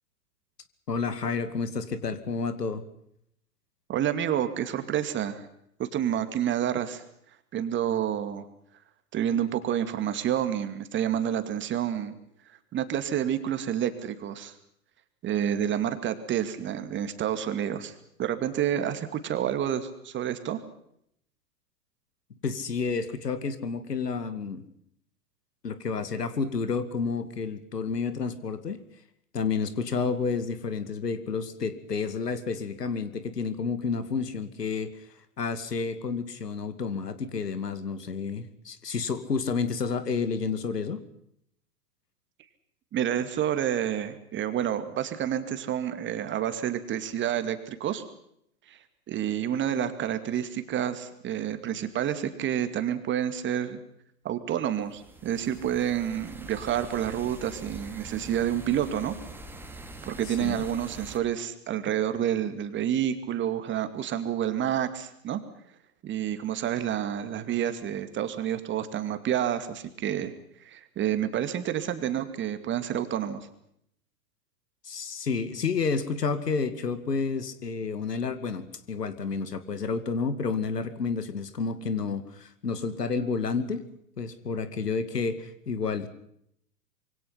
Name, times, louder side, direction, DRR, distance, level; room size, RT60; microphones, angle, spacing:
voice 1, 0.9-2.8 22.4-24.6 25.6-28.8 29.3-35.1 35.4-41.0 60.3-60.6 74.8-83.8 84.2-86.1, left 5 dB, 80° left, 12 dB, 2.6 m, -30 dB
voice 2, 3.9-5.5 5.8-7.0 7.5-8.5 9.1-12.2 12.7-14.5 15.2-17.9 18.2-20.6 42.9-48.0 48.7-48.8 49.1-53.8 54.2-59.2 60.0-65.4 66.0-70.3 70.6-73.5, right 10 dB, 25° right, 10 dB, 2.4 m, -29 dB
sound 1, 54.8-61.2, right 2 dB, 5° right, 2.8 m, -44 dB
26.0 x 23.5 x 5.8 m, 0.73 s
hypercardioid pair, 110°, 47 cm